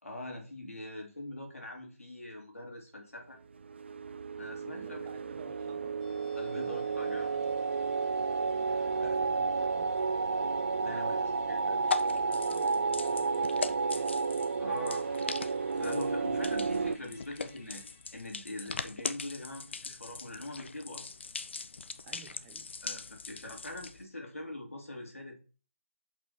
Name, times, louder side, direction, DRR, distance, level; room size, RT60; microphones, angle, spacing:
voice 1, 0.0-3.4 4.4-5.1 6.3-7.5 9.0-9.2 10.8-11.8 14.6-15.1 15.7-17.8 18.1-21.1 22.8-25.4, left 1 dB, 90° left, 2 dB, 2.7 m, -43 dB
sound 1, 3.6-17.0, right 4 dB, 55° right, 0.5 m, -32 dB
voice 2, 4.7-6.0 8.2-10.2 10.8-14.2 22.0-22.7, right 6 dB, 15° right, 6 dB, 0.8 m, -53 dB
Musical instrument, 6.0-20.7 21.0-21.1, left 4 dB, 15° left, 1.0 m, -61 dB
sound 2, 10.8-24.0, left 4 dB, 55° left, 0.7 m, -41 dB
7.8 x 5.4 x 4.2 m, 0.38 s
figure-of-eight pair, 160°, 7 cm